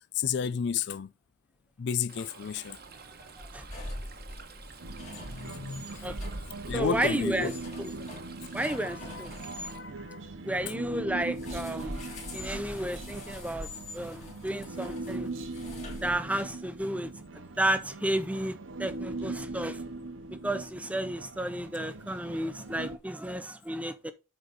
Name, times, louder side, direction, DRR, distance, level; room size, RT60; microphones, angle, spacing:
voice 1, 0.2-1.1 1.8-2.8 5.3-6.1 6.7-7.5 8.7-10.3 19.3-19.4, left 7 dB, 55° left, 0.4 m, -33 dB
Stream, 2.1-9.8, right 3 dB, 45° right, 1.1 m, -47 dB
sound 1, 3.3-9.7 11.3-16.6, left 1 dB, 30° left, 2.5 m, -44 dB
Human voice, 4.8-23.0, right 2 dB, 65° right, 0.8 m, -40 dB
voice 2, 6.7-7.5 7.8-7.9 8.5-9.3 10.4-12.0 12.3-13.7 13.9-15.3 16.0-17.1 17.3-19.8 20.4-24.1, right 1 dB, 5° right, 0.5 m, -32 dB
8.0 x 4.0 x 5.1 m
head